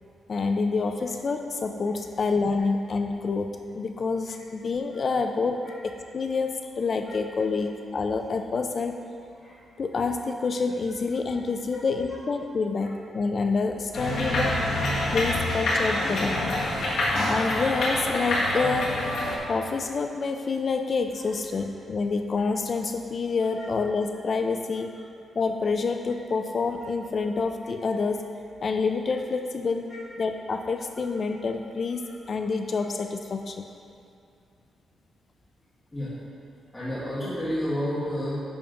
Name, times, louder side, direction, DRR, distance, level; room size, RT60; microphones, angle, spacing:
voice 1, 0.3-9.0 9.8-14.6 15.1-16.4 17.3-19.0 19.5-24.9 25.4-28.3 28.6-29.9 30.2-32.0 32.3-33.7, left 4 dB, 35° left, 6 dB, 0.3 m, -27 dB
sound 1, 13.9-19.4, left 1 dB, 65° left, 1.7 m, -26 dB
voice 2, 36.7-38.4, equal, 15° left, -12 dB, 2.0 m, -30 dB
10.0 x 3.7 x 6.0 m, 2.5 s
wide cardioid pair, 175°, 0 cm